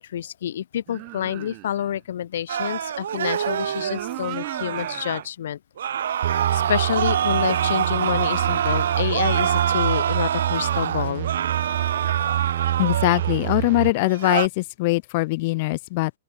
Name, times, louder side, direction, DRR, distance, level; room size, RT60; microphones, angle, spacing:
voice 1, 0.0-5.6 6.1-6.2 6.5-11.3, left 10 dB, 70° left, 2.4 m, -28 dB
sound 1, 0.9-2.0 3.4-5.3 5.8-5.9 7.8-10.3, right 34 dB, 30° right, 2.6 m, -40 dB
sound 2, 2.5-5.2 5.8-13.6 14.0-14.5, right 9 dB, 80° right, 2.3 m, -26 dB
sound 3, 6.2-13.9, right 14 dB, 55° right, 4.4 m, -27 dB
voice 2, 12.8-16.1, left 23 dB, 40° left, 2.0 m, -22 dB
open air
hypercardioid pair, 165°, 0 cm